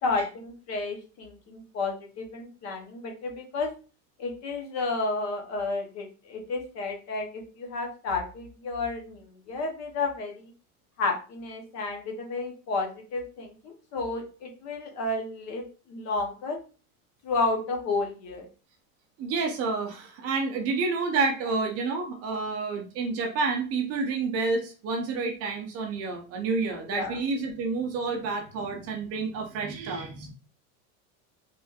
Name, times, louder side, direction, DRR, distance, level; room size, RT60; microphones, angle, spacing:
voice 1, 0.0-3.7 4.2-10.5 11.0-16.6 17.2-18.5 26.7-27.2, left 3 dB, 40° left, 2 dB, 0.8 m, -31 dB
voice 2, 19.2-30.3, right 4 dB, 35° right, 3 dB, 0.5 m, -29 dB
3.3 x 3.0 x 2.3 m, 0.35 s
supercardioid pair, 145°, 42 cm